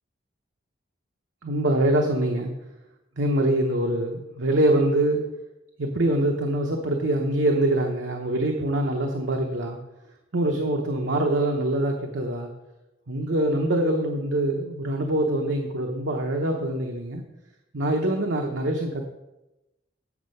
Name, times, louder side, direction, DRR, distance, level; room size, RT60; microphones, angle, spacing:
voice 1, 1.4-2.5 3.2-5.2 5.8-9.8 10.3-12.5 13.1-17.2 17.7-19.0, right 1 dB, 80° right, 2 dB, 0.9 m, -24 dB
8.4 x 6.4 x 5.5 m, 0.97 s
head